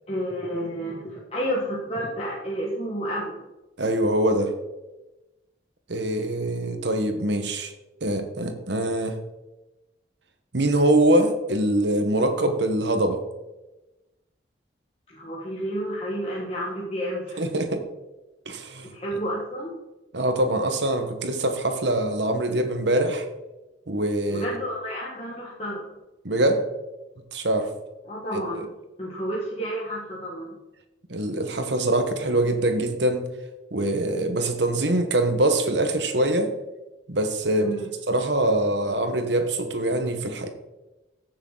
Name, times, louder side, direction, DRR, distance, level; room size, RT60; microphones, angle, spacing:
voice 1, 0.1-3.4 15.1-17.4 18.8-19.8 24.3-25.8 28.0-28.7 29.0-30.6 37.6-37.9, equal, 30° left, -6 dB, 1.7 m, -30 dB
voice 2, 3.8-4.5 5.9-7.7 8.0-9.1 10.5-13.2 17.4-17.8 18.5-18.9 20.1-23.2 23.9-24.4 26.2-26.7 27.3-27.7 28.6-28.7 31.1-33.3 33.7-36.5 37.1-37.7 38.1-40.5, right 1 dB, 70° right, 6 dB, 1.3 m, -23 dB
15.0 x 6.7 x 3.9 m, 1.0 s
head